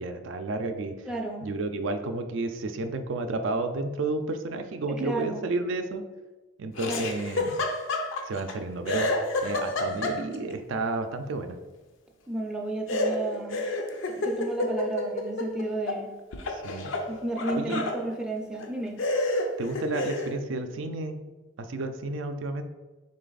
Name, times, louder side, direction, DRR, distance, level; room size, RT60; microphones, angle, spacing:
voice 1, 0.0-0.9 1.4-6.0 6.6-7.6 8.3-9.1 9.4-11.6 16.5-16.9 17.5-17.8 19.6-21.2 21.6-22.6, right 3 dB, 75° right, 7 dB, 0.4 m, -31 dB
voice 2, 1.1-1.5 4.9-5.5 6.8-7.1 12.3-13.6 14.1-16.1 17.1-19.0, right 2 dB, 5° right, -1 dB, 0.4 m, -32 dB
Laughter, 6.8-8.5 8.9-10.5 12.9-16.0 16.3-18.0 18.6-18.7 19.0-20.3, left 2 dB, 75° left, 0.5 m, -29 dB
3.9 x 3.3 x 3.9 m, 1.2 s
head